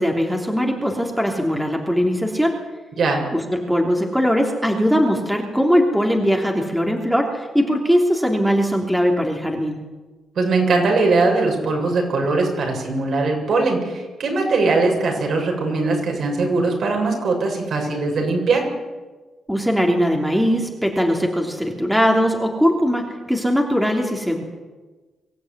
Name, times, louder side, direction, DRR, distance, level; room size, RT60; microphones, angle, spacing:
voice 1, 0.0-2.6 3.3-9.8 19.5-24.4, equal, ahead, 1 dB, 3.2 m, -20 dB
voice 2, 3.0-3.3 10.4-18.7, right 3 dB, 60° right, 1 dB, 7.3 m, -20 dB
24.0 x 16.0 x 9.6 m, 1.3 s
cardioid pair, 115°, 0 cm